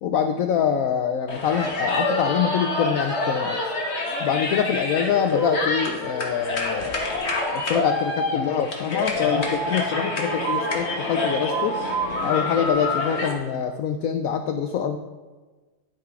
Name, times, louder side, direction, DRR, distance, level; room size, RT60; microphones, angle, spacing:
voice 1, 0.0-3.7 4.2-11.8 12.2-15.0, left 8 dB, 75° left, 6 dB, 0.8 m, -25 dB
sound 1, 1.3-13.3, left 2 dB, 40° left, 1.5 m, -26 dB
10.5 x 5.8 x 4.7 m, 1.3 s
omnidirectional pair, 1.9 m